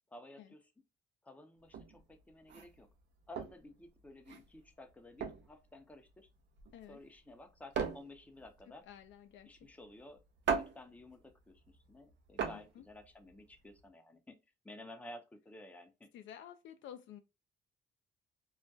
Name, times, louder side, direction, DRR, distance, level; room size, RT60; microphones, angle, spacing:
voice 1, 0.1-0.6 1.2-2.9 3.3-6.3 6.9-8.8 9.4-10.2 10.5-14.4 14.6-16.1, left 1 dB, 5° left, 0.5 m, -53 dB
sound 1, 1.6-13.9, right 6 dB, 65° right, 0.5 m, -41 dB
voice 2, 8.9-9.7 12.5-12.8 16.1-17.2, left 10 dB, 70° left, 0.4 m, -52 dB
2.3 x 2.1 x 2.5 m
cardioid pair, 90°, 20 cm